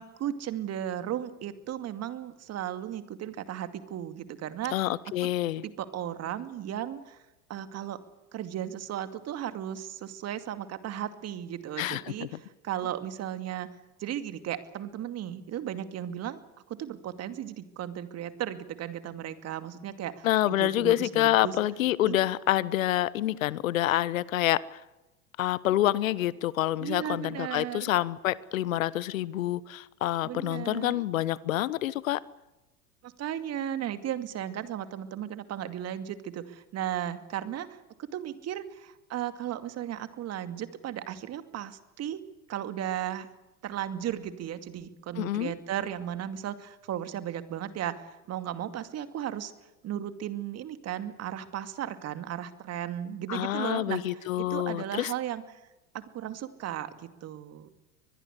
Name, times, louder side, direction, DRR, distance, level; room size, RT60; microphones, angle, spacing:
voice 1, 0.0-4.9 5.6-7.2 7.5-8.0 8.3-13.7 14.0-16.4 16.7-21.6 22.0-22.2 26.8-27.9 30.2-31.0 33.0-43.3 43.6-49.5 49.8-54.0 54.4-55.6 55.9-57.7, right 11 dB, 35° right, 10 dB, 2.4 m, -35 dB
voice 2, 4.7-5.6 11.8-12.3 20.2-24.8 25.4-32.2 45.2-45.5 53.3-55.1, left 14 dB, 70° left, 20 dB, 1.1 m, -27 dB
24.0 x 20.5 x 8.2 m, 1.0 s
hypercardioid pair, 85°, 42 cm